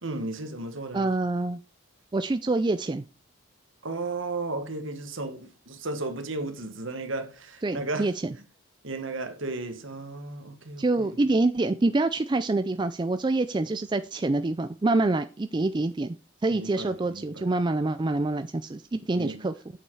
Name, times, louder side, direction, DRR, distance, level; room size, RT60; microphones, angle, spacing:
voice 1, 0.0-1.1 3.8-8.1 8.8-11.2 16.5-17.4 19.1-19.4, right 2 dB, 65° right, 1.6 m, -34 dB
voice 2, 0.9-1.6 2.1-3.0 7.6-8.3 10.8-16.2 16.4-19.5, right 2 dB, 20° right, 0.3 m, -26 dB
8.5 x 7.0 x 4.8 m
head